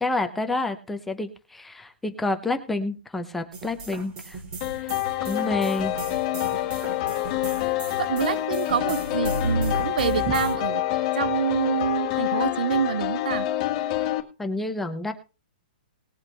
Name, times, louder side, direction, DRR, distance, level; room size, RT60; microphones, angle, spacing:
voice 1, 0.0-4.4 4.8-4.9 5.2-6.0 14.4-15.1, left 2 dB, 5° left, 0.7 m, -29 dB
Mother-Accelerated, 3.5-10.6, right 2 dB, 20° right, 2.4 m, -34 dB
sound 1, 4.6-14.2, left 15 dB, 25° left, 1.7 m, -27 dB
voice 2, 8.0-13.5, right 8 dB, 65° right, 0.5 m, -27 dB
19.5 x 8.0 x 3.3 m
hypercardioid pair, 180°, 5 cm